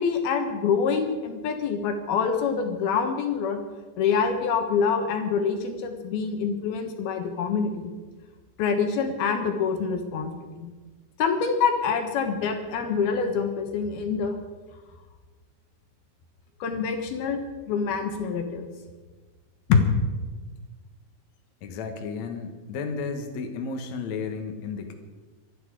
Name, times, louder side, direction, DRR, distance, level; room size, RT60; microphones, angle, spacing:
voice 1, 0.0-3.6 4.0-7.9 8.6-10.7 11.2-14.4 16.6-17.4 17.7-18.7 19.7-19.8, left 6 dB, 70° left, 5 dB, 3.1 m, -26 dB
voice 2, 21.6-24.9, left 5 dB, 55° left, 4 dB, 2.3 m, -33 dB
24.5 x 10.5 x 5.0 m, 1.3 s
omnidirectional pair, 4.7 m